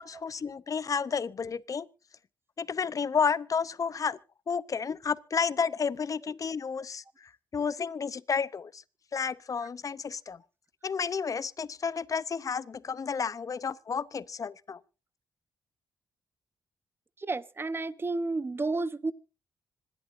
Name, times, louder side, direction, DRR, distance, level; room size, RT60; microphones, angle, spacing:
voice 1, 0.0-1.9 2.6-4.2 4.5-7.0 7.5-8.8 9.1-10.4 10.8-14.8, left 6 dB, 45° left, 0.7 m, -31 dB
voice 2, 17.2-19.1, right 3 dB, 30° right, 0.9 m, -31 dB
26.0 x 11.5 x 2.6 m
cardioid pair, 70°, 8 cm